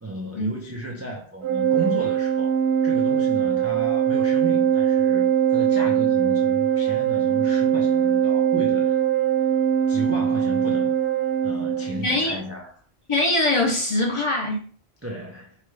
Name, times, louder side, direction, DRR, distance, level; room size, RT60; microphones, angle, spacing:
voice 1, 0.0-2.6 2.8-9.0 9.9-10.9 11.4-12.7 15.0-15.6, right 1 dB, 25° right, 0.3 m, -34 dB
Organ, 1.4-12.2, right 9 dB, 85° right, 0.9 m, -21 dB
voice 2, 12.0-12.4 13.1-14.7, left 2 dB, 35° left, 0.7 m, -22 dB
4.0 x 2.2 x 3.2 m
omnidirectional pair, 1.1 m